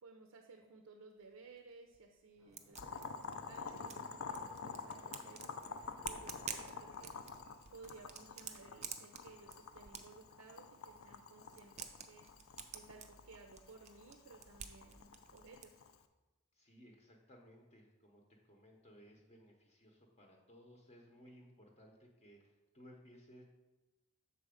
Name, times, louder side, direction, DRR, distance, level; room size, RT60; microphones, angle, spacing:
voice 1, 0.0-7.1 7.7-15.8, right 3 dB, 80° right, 4 dB, 0.5 m, -58 dB
sound 1, 1.6-1.7 1.9-10.9 11.4-15.7, right 7 dB, 30° right, 0.4 m, -51 dB
sound 2, 2.3-7.9 8.3-8.4, equal, 5° right, 0.8 m, -66 dB
Boiling, 2.8-16.0, left 5 dB, 70° left, 0.5 m, -49 dB
voice 2, 16.5-23.4, equal, 30° left, 0 dB, 0.7 m, -60 dB
6.7 x 4.2 x 5.0 m, 1.1 s
head